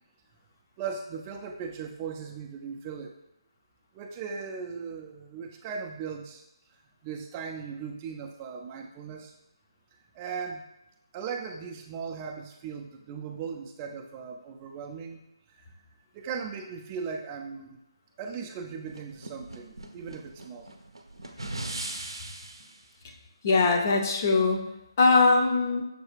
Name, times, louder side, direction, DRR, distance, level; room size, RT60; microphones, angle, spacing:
voice 1, 0.8-3.1 3.9-6.4 7.0-9.3 10.1-10.6 11.1-15.2 16.1-17.8 18.2-20.7, right 6 dB, 20° right, 3 dB, 0.3 m, -38 dB
sound 1, 18.9-22.8, right 2 dB, 75° right, 0.5 m, -39 dB
voice 2, 23.4-24.6 25.0-25.8, left 3 dB, 35° left, 1 dB, 0.5 m, -21 dB
6.6 x 2.3 x 3.3 m, 0.88 s
figure-of-eight pair, 150°, 3 cm